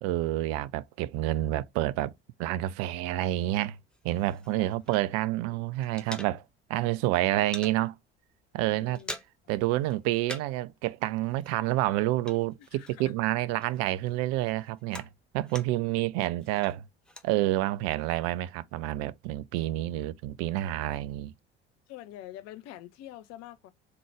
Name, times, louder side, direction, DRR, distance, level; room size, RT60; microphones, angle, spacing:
voice 1, 0.0-2.1 2.4-3.8 4.0-6.4 6.7-8.0 8.5-9.0 9.5-15.1 15.3-16.8 17.2-21.3, right 15 dB, 50° right, 0.5 m, -28 dB
sound 1, 3.9-5.4 5.6-6.8 7.0-7.8 8.2-8.4 8.7-9.6 9.8-10.7 10.9-13.3 13.6-16.0 16.4-17.3, equal, 5° left, 0.6 m, -45 dB
voice 2, 8.7-9.2 12.6-13.1 21.9-23.7, left 13 dB, 50° left, 0.8 m, -46 dB
3.8 x 2.9 x 4.7 m
figure-of-eight pair, 60°, 34 cm